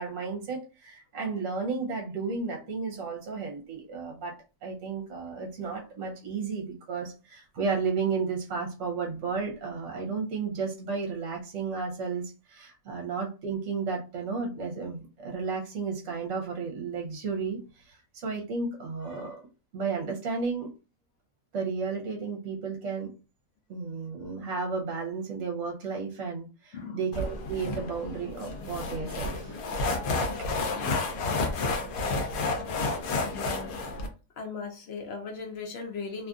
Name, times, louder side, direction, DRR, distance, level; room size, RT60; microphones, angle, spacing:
voice 1, 0.0-19.4 19.7-20.7 21.5-23.1 23.7-29.5, right 5 dB, 65° right, 0 dB, 1.0 m, -33 dB
voice 2, 26.7-27.1 32.0-32.1 33.2-33.7 34.4-36.3, left 4 dB, 60° left, 3 dB, 0.7 m, -38 dB
sound 1, 27.1-34.1, left 3 dB, 85° left, 1.1 m, -31 dB
2.8 x 2.5 x 2.3 m, 0.31 s
omnidirectional pair, 1.5 m